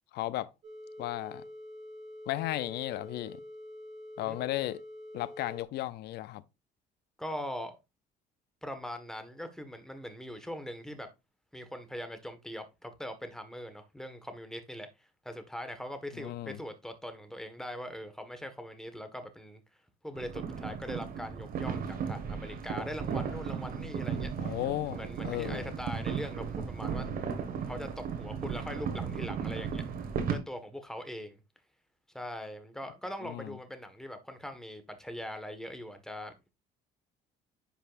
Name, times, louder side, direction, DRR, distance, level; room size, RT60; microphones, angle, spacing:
voice 1, 0.1-0.5 1.0-1.4 2.3-3.4 4.2-4.8 5.1-6.4 16.2-16.6 24.4-25.0 25.2-25.7 33.2-33.6, left 15 dB, 75° left, 0.6 m, -34 dB
sound 1, 0.6-5.6, left 1 dB, 45° right, 3.1 m, -46 dB
voice 2, 7.2-7.7 8.6-11.1 11.5-19.6 20.0-24.6 24.9-27.1 27.6-29.8 30.3-31.4 32.1-36.5, equal, 5° left, 1.6 m, -41 dB
sound 2, 20.2-30.4, right 6 dB, 60° right, 1.7 m, -35 dB
10.0 x 5.7 x 2.6 m
cardioid pair, 110°, 17 cm